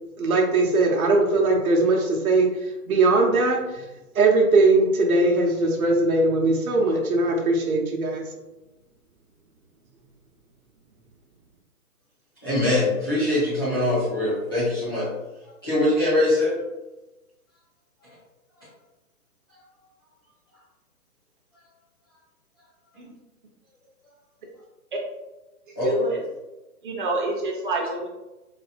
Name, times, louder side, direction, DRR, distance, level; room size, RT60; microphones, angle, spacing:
voice 1, 0.2-2.5 2.9-3.6 4.1-8.2, right 2 dB, 65° right, 0 dB, 0.9 m, -20 dB
voice 2, 12.4-15.1 15.6-16.5 18.0-18.1 25.8-25.9, left 1 dB, 15° left, -12 dB, 0.5 m, -22 dB
voice 3, 25.8-26.2 26.8-28.1, right 3 dB, 35° right, -1 dB, 0.6 m, -27 dB
4.0 x 2.5 x 2.3 m, 1.0 s
hypercardioid pair, 155°, 46 cm